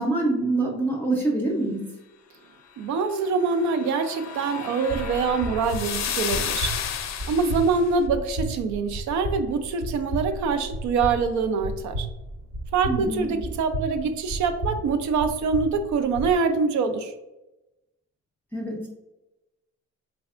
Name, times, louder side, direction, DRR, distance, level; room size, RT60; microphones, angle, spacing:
voice 1, 0.0-1.9 12.9-13.3 18.5-18.9, right 2 dB, 5° left, -2 dB, 0.6 m, -25 dB
voice 2, 2.8-6.7 7.2-12.1 12.7-17.1, right 4 dB, 70° right, 9 dB, 0.5 m, -25 dB
sound 1, 3.2-7.8, left 8 dB, 65° left, 0.5 m, -32 dB
sound 2, 4.9-16.3, right 1 dB, 50° right, 0.8 m, -34 dB
3.4 x 3.4 x 2.4 m, 0.98 s
cardioid pair, 90°, 30 cm